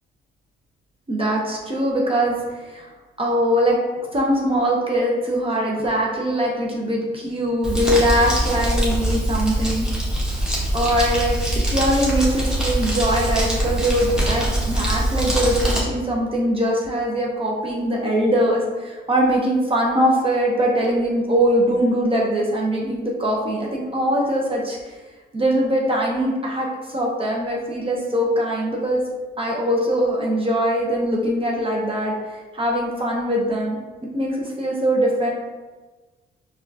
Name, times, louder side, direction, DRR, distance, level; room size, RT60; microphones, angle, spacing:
voice 1, 1.1-2.9 3.2-3.8 4.1-9.9 10.7-11.4 11.7-25.0 25.3-29.0 29.4-33.8 34.1-35.3, equal, 25° right, -2 dB, 0.7 m, -22 dB
Crumpling crinkling, 7.6-15.8, right 1 dB, 5° right, 1.0 m, -23 dB
4.2 x 2.3 x 2.7 m, 1.3 s
cardioid pair, 90°, 20 cm